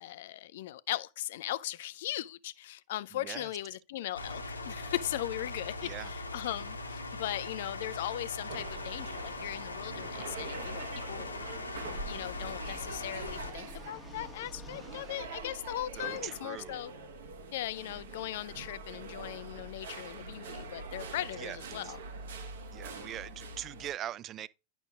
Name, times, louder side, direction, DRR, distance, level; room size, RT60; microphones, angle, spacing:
voice 1, 0.0-11.3 12.1-16.9 17.5-22.0, left 14 dB, 55° left, 0.4 m, -38 dB
voice 2, 3.1-3.5 5.8-6.1 16.0-16.8 21.4-21.6 21.8-22.0 22.7-24.5, right 11 dB, 30° right, 0.3 m, -41 dB
sound 1, 4.1-13.5, left 2 dB, 80° left, 0.9 m, -40 dB
sound 2, 7.9-15.2, left 3 dB, 10° left, 1.2 m, -56 dB
sound 3, 8.5-23.9, right 3 dB, 60° right, 1.2 m, -44 dB
10.5 x 6.1 x 2.3 m
figure-of-eight pair, 90°, 0 cm